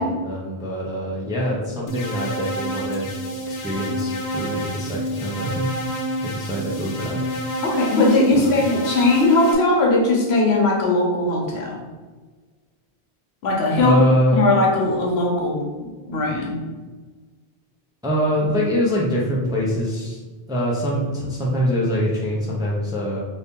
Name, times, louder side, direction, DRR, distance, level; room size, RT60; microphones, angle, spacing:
voice 1, 0.0-5.7 6.2-7.2 8.3-8.6 13.8-14.4 18.0-20.2 20.5-23.2, equal, 5° right, -4 dB, 0.4 m, -24 dB
sound 1, 1.9-9.5, equal, 55° left, 0.6 m, -29 dB
voice 2, 7.6-11.8 13.4-14.0 14.3-16.6, left 2 dB, 80° left, -1 dB, 1.0 m, -19 dB
2.7 x 2.7 x 3.6 m, 1.3 s
omnidirectional pair, 1.1 m